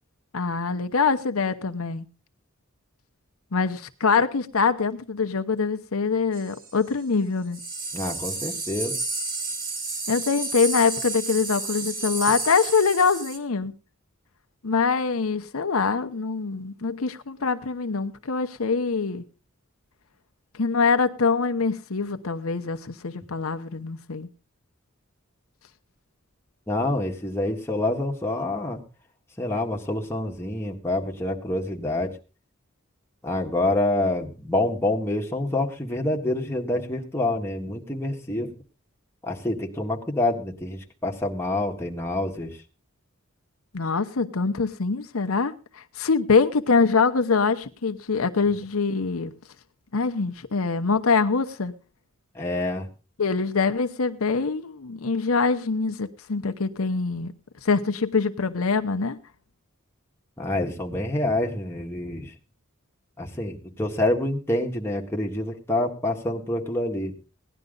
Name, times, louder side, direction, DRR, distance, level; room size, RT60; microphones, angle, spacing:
voice 1, 0.3-2.1 3.5-7.6 10.1-13.7 14.6-19.2 20.5-24.3 43.7-49.3 49.9-51.7 53.2-57.3 57.6-59.2, left 4 dB, 80° left, 0.9 m, -24 dB
sound 1, 6.3-6.7 7.5-13.4, right 3 dB, 45° right, 2.2 m, -31 dB
voice 2, 7.9-8.9 26.7-28.8 29.4-32.1 33.2-38.5 39.2-42.6 52.4-52.9 60.4-62.3 63.2-67.1, left 1 dB, 10° left, 1.8 m, -27 dB
17.5 x 11.0 x 3.9 m
head